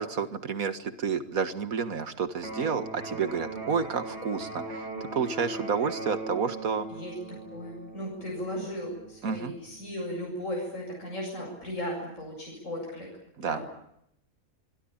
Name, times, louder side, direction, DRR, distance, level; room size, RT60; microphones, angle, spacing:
voice 1, 0.0-6.9 9.2-9.5 13.4-13.6, right 6 dB, 75° right, 10 dB, 2.1 m, -30 dB
Electric guitar, 2.4-10.4, right 2 dB, 50° right, 6.0 m, -40 dB
voice 2, 6.9-13.1 13.4-13.7, equal, 65° left, -1 dB, 7.8 m, -36 dB
26.5 x 22.0 x 8.9 m, 0.76 s
omnidirectional pair, 1.5 m